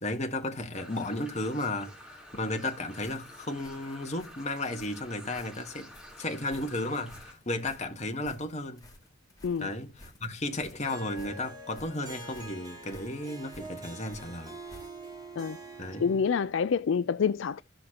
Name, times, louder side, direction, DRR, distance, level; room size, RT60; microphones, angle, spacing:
voice 1, 0.0-8.8 9.6-14.6 15.8-16.1, left 2 dB, 35° left, 1.5 m, -34 dB
sound 1, 0.7-7.3, equal, 5° right, 3.8 m, -50 dB
sound 2, 3.0-15.2, left 1 dB, 20° left, 2.3 m, -54 dB
Harp, 10.8-16.6, right 2 dB, 20° right, 2.2 m, -45 dB
voice 2, 16.0-17.6, left 6 dB, 70° left, 0.4 m, -27 dB
14.5 x 6.4 x 2.9 m
head